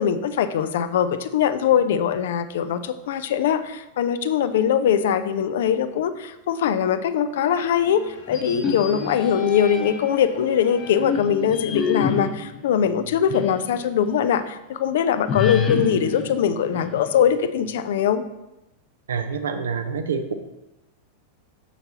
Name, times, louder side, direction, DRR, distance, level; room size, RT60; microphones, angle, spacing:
voice 1, 0.0-18.2, left 8 dB, 55° left, 11 dB, 0.5 m, -22 dB
sound 1, 7.5-11.9, left 2 dB, 80° left, 2.5 m, -45 dB
sound 2, 8.3-10.1 10.7-13.7 14.1-14.2 15.3-17.3, left 6 dB, 25° left, 0.9 m, -28 dB
voice 2, 19.1-20.3, right 5 dB, 65° right, 8 dB, 0.6 m, -27 dB
6.9 x 6.7 x 3.0 m, 0.94 s
figure-of-eight pair, 90°, 0 cm